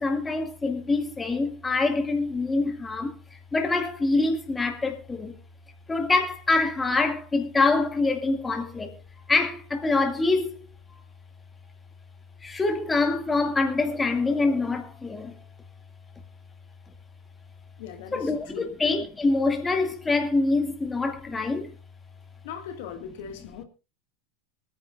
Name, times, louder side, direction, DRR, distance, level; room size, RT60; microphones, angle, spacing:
voice 1, 0.0-3.2 3.5-5.3 5.9-9.0 9.3-10.7 12.4-15.3 18.1-21.7, left 3 dB, 15° left, 2.2 m, -25 dB
voice 2, 17.8-18.7 22.4-23.6, left 8 dB, 60° left, 2.0 m, -39 dB
24.5 x 9.7 x 2.5 m
figure-of-eight pair, 85°, 0 cm